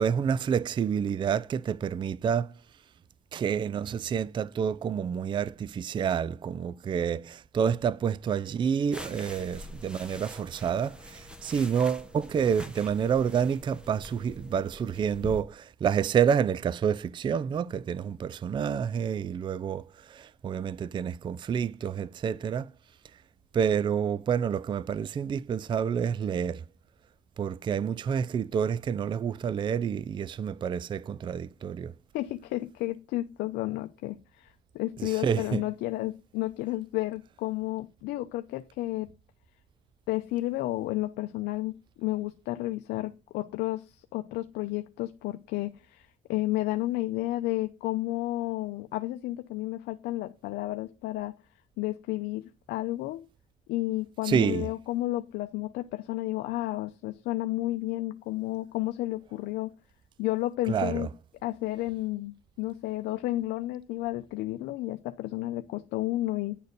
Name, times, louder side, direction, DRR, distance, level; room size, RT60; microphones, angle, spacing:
voice 1, 0.0-2.5 3.3-22.7 23.5-26.6 27.4-31.9 35.0-35.6 54.2-54.7 60.7-61.1, right 7 dB, 30° right, 0.3 m, -28 dB
sound 1, 8.9-15.4, left 1 dB, 5° right, 1.2 m, -45 dB
voice 2, 32.1-39.1 40.1-51.4 51.8-53.2 53.7-59.7 60.2-61.1 61.4-66.6, left 17 dB, 85° left, 0.6 m, -32 dB
9.9 x 4.1 x 6.5 m
cardioid pair, 110°, 17 cm